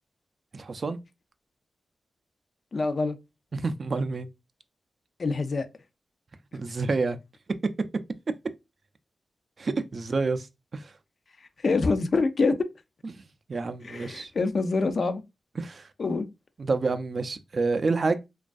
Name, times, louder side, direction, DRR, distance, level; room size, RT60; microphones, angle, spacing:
voice 1, 0.5-1.0 3.5-4.3 6.5-7.2 9.6-10.5 10.7-10.9 13.5-14.3 15.6-15.9 16.6-18.2, right 3 dB, 55° right, 0.3 m, -28 dB
voice 2, 2.7-3.2 5.2-5.7 11.6-12.5 13.8-15.2 16.0-16.3, left 3 dB, 60° left, 0.3 m, -25 dB
2.3 x 2.3 x 2.5 m
cardioid pair, 55°, 0 cm